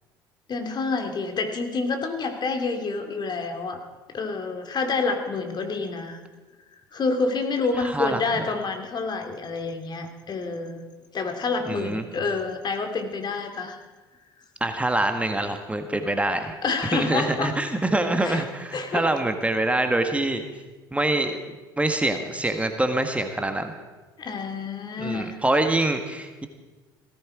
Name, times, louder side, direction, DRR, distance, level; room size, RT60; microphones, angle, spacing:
voice 1, 0.5-3.8 4.1-6.2 6.9-10.8 11.1-13.8 16.6-17.5 18.2-18.4 18.7-19.1 24.2-25.3, left 4 dB, 40° left, 5 dB, 2.5 m, -28 dB
voice 2, 7.8-8.5 11.6-12.0 14.6-16.6 16.9-20.4 20.9-21.4 21.8-23.7 25.0-26.5, right 2 dB, 10° right, 6 dB, 1.6 m, -25 dB
17.0 x 15.0 x 4.9 m, 1.2 s
hypercardioid pair, 60°, 11 cm